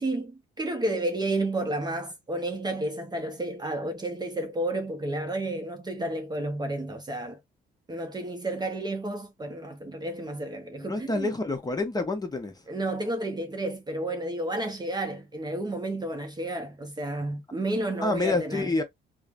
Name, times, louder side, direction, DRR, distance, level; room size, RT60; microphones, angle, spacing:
voice 1, 0.0-7.4 7.9-11.4 12.7-18.7, right 1 dB, 20° right, 0.6 m, -31 dB
voice 2, 10.9-12.5 18.0-18.8, left 2 dB, 20° left, 0.7 m, -27 dB
3.1 x 2.0 x 2.4 m
cardioid pair, 90°, 20 cm